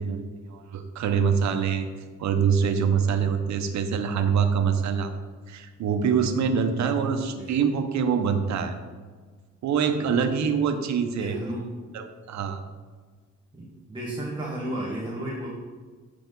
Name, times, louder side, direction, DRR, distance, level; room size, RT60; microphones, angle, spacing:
voice 1, 0.0-1.9 2.2-5.1 5.5-8.7 9.6-11.4 11.9-12.6, right 6 dB, 65° right, 7 dB, 0.8 m, -25 dB
voice 2, 7.0-7.6 11.1-11.7 13.5-15.5, right 1 dB, 15° right, -5 dB, 1.6 m, -33 dB
8.1 x 5.0 x 3.9 m, 1.5 s
cardioid pair, 90°, 30 cm